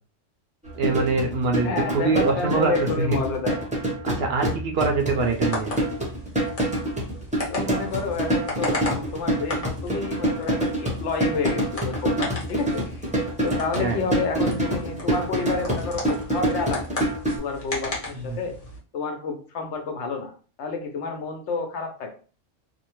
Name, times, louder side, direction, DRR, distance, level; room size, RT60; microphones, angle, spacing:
sound 1, 0.6-17.4, right 1 dB, 10° right, 0.6 m, -27 dB
voice 1, 0.8-2.7 3.0-3.2 4.0-5.7 13.8-14.0 18.2-18.4, right 4 dB, 65° right, 1 dB, 0.7 m, -24 dB
voice 2, 1.6-3.6 7.5-12.8 13.4-17.1 17.4-18.5 18.9-20.3 20.6-22.1, left 4 dB, 70° left, 3 dB, 0.9 m, -29 dB
sound 2, 5.2-18.8, left 2 dB, 35° left, 0.8 m, -36 dB
2.6 x 2.1 x 2.9 m, 0.39 s
omnidirectional pair, 1.3 m